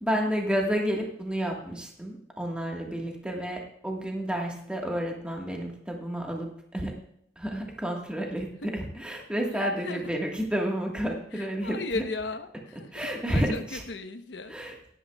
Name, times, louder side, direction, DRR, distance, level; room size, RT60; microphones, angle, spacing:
voice 1, 0.0-6.9 7.4-12.0 12.9-13.8 14.5-14.8, equal, 5° right, 0 dB, 1.5 m, -30 dB
voice 2, 9.5-10.1 11.3-14.5, left 3 dB, 80° left, 8 dB, 0.9 m, -37 dB
16.0 x 11.5 x 2.3 m, 0.69 s
head